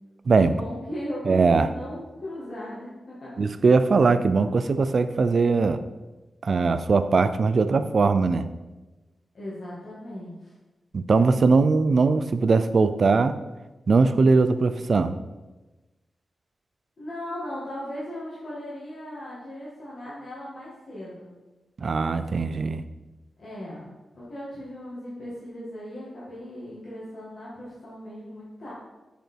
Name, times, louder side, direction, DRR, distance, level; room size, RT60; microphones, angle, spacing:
voice 1, 0.4-3.4 9.3-10.5 17.0-21.3 23.4-28.7, left 1 dB, 55° left, -9 dB, 2.2 m, -37 dB
voice 2, 1.3-1.7 3.4-5.8 6.4-8.5 10.9-13.4 13.9-15.1 21.8-22.8, right 4 dB, 50° right, 12 dB, 0.4 m, -20 dB
7.5 x 5.1 x 4.6 m, 1.1 s
wide cardioid pair, 145°, 0 cm